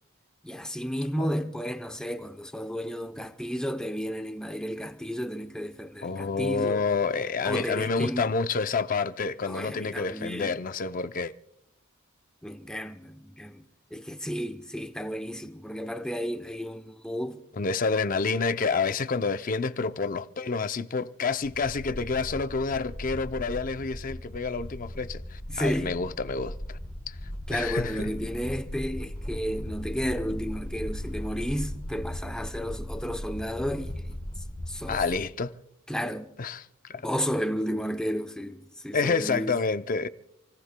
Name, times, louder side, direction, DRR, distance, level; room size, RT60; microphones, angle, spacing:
voice 1, 0.4-6.8 7.4-8.3 9.4-10.6 12.4-13.6 13.9-17.4 25.5-26.0 27.5-34.2 34.7-35.0 35.9-36.3 37.0-39.6, equal, 5° left, 0.7 m, -32 dB
voice 2, 6.0-11.3 17.5-26.8 27.1-27.2 27.5-28.1 34.9-35.5 36.4-37.1 38.9-40.1, left 4 dB, 40° left, 0.5 m, -28 dB
sound 1, 21.4-35.2, equal, 25° left, 2.4 m, -38 dB
28.5 x 18.0 x 2.2 m
head